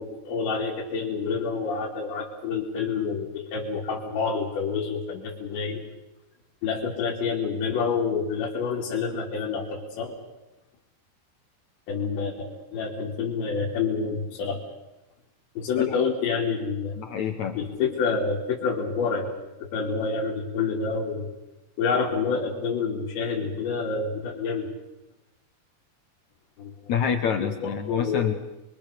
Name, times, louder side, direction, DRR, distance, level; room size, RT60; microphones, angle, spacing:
voice 1, 0.0-5.8 6.6-10.2 11.9-14.6 15.6-17.1 17.6-21.3 21.8-24.7 26.6-26.9 27.4-28.4, left 5 dB, 90° left, -4 dB, 5.3 m, -28 dB
voice 2, 17.0-17.6 26.9-28.3, left 7 dB, 65° left, 7 dB, 1.8 m, -27 dB
30.0 x 23.0 x 6.8 m, 0.98 s
omnidirectional pair, 4.9 m